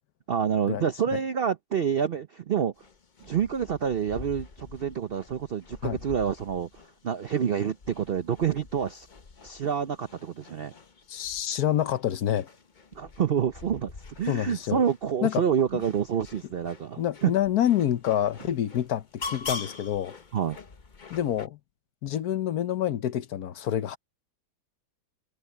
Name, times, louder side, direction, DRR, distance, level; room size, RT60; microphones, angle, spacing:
voice 1, 0.3-2.7 3.2-6.7 7.0-9.1 9.4-10.7 12.9-17.3 20.3-20.6, right 8 dB, 75° right, 0.5 m, -28 dB
sound 1, 2.8-21.5, left 4 dB, 35° left, 0.9 m, -45 dB
voice 2, 11.1-12.5 14.3-14.8 15.2-15.4 17.0-20.1 21.1-21.6 22.0-24.0, left 11 dB, 65° left, 1.3 m, -27 dB
omnidirectional pair, 1.9 m